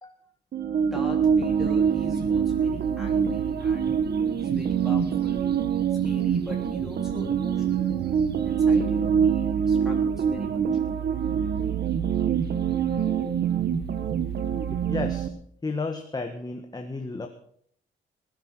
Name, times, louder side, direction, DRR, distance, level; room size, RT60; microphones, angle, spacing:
sound 1, 0.5-15.3, right 7 dB, 55° right, 1.5 m, -25 dB
voice 1, 0.8-3.9 4.3-5.5 6.0-7.9 8.4-10.6, left 1 dB, ahead, -2 dB, 3.3 m, -40 dB
voice 2, 14.7-15.3 15.6-17.3, left 3 dB, 20° left, 5 dB, 1.5 m, -33 dB
20.0 x 9.1 x 6.1 m, 0.65 s
cardioid pair, 90°, 20 cm